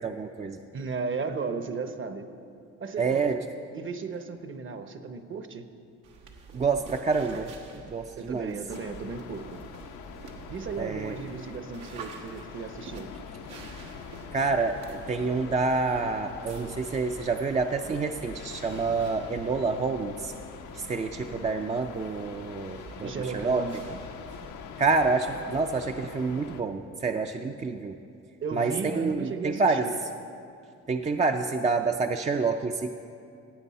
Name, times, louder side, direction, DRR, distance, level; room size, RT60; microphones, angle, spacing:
voice 1, 0.0-0.6 3.0-3.4 6.5-7.5 7.8-8.5 10.8-11.2 14.3-20.3 20.7-23.6 24.8-28.0 28.5-29.9 30.9-32.9, right 4 dB, 25° right, 5 dB, 0.4 m, -28 dB
voice 2, 0.7-2.3 2.8-3.5 3.7-5.7 8.2-9.6 10.5-13.1 17.9-18.0 23.0-24.0 28.4-30.0, right 5 dB, 40° right, 9 dB, 0.8 m, -35 dB
sound 1, 6.0-24.5, right 4 dB, 90° right, 1.3 m, -48 dB
sound 2, 8.7-26.6, left 7 dB, 80° left, 0.7 m, -44 dB
15.5 x 8.3 x 4.2 m, 2.5 s
cardioid pair, 90°, 30 cm